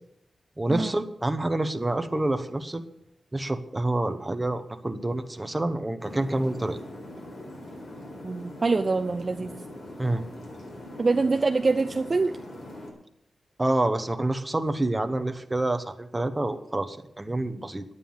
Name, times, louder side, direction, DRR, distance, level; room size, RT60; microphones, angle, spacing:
voice 1, 0.6-2.8 3.3-6.8 10.0-10.2 13.6-17.8, right 2 dB, 15° right, 7 dB, 1.0 m, -27 dB
sound 1, 6.0-12.9, left 1 dB, 65° left, 4.2 m, -42 dB
voice 2, 8.2-9.5 11.0-12.3, right 3 dB, 35° right, 5 dB, 0.5 m, -24 dB
11.0 x 9.4 x 7.1 m, 0.78 s
wide cardioid pair, 135°, 0 cm